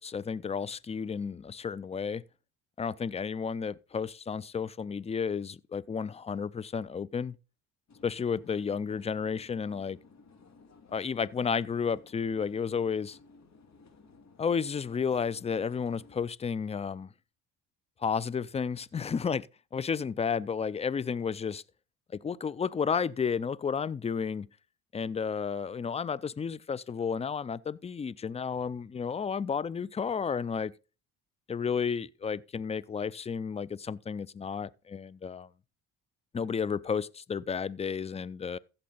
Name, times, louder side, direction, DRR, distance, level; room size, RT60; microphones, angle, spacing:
voice 1, 0.0-2.2 2.8-7.4 8.0-10.0 10.9-13.2 14.4-17.1 18.0-19.5 19.7-21.6 22.1-24.5 24.9-30.7 31.5-35.5 36.3-38.6, left 6 dB, 15° left, 0.4 m, -32 dB
sound 1, 7.9-16.2, left 4 dB, 40° left, 2.3 m, -57 dB
14.5 x 6.6 x 3.9 m
supercardioid pair, 75°, 40 cm